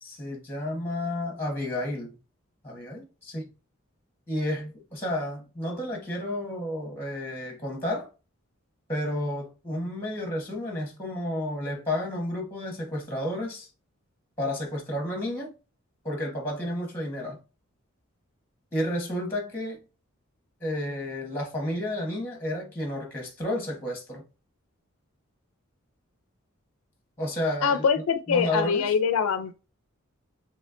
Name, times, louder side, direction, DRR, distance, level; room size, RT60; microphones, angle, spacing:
voice 1, 0.0-2.2 2.6-3.5 4.3-8.1 8.9-13.7 14.4-15.5 16.0-17.4 18.7-19.8 20.6-24.2 27.2-27.8 28.3-28.9, left 1 dB, 10° left, 1.1 m, -31 dB
voice 2, 27.6-29.5, left 6 dB, 75° left, 0.4 m, -24 dB
4.2 x 3.2 x 2.5 m
head